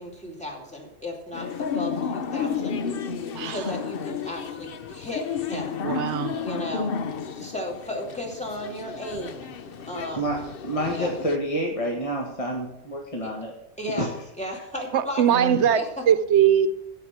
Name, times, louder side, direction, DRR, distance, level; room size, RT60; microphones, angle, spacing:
voice 1, 0.0-2.8 3.4-5.8 6.4-6.9 7.3-9.5 9.9-10.3 10.9-11.1 13.2-13.3 13.8-14.1 14.4-15.2 15.6-16.0, left 1 dB, 5° left, -1 dB, 2.8 m, -34 dB
sound 1, 1.3-11.4, left 6 dB, 55° left, 0.9 m, -32 dB
voice 2, 3.3-3.7 5.8-6.4 14.9-16.7, right 9 dB, 65° right, 12 dB, 1.1 m, -21 dB
voice 3, 10.6-13.5 14.0-14.1, equal, 25° left, -1 dB, 1.8 m, -28 dB
15.5 x 5.8 x 6.2 m, 0.83 s
omnidirectional pair, 1.3 m